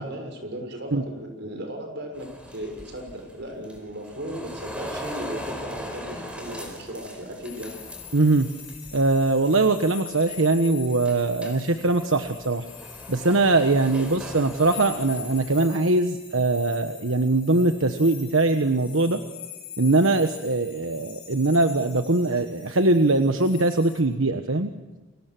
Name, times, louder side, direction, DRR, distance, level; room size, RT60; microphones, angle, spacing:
voice 1, 0.0-7.7 13.9-14.1, equal, 60° right, 4 dB, 6.5 m, -36 dB
sound 1, 2.1-9.0 9.2-9.6 10.1-10.7 11.0-15.6, equal, 5° right, 4.6 m, -39 dB
sound 2, 7.4-24.0, left 9 dB, 25° left, 7.0 m, -43 dB
voice 2, 8.1-8.5 8.9-12.7 13.1-19.2 19.8-24.7, right 2 dB, 85° right, 7 dB, 1.3 m, -21 dB
29.5 x 25.0 x 6.2 m, 1.1 s
head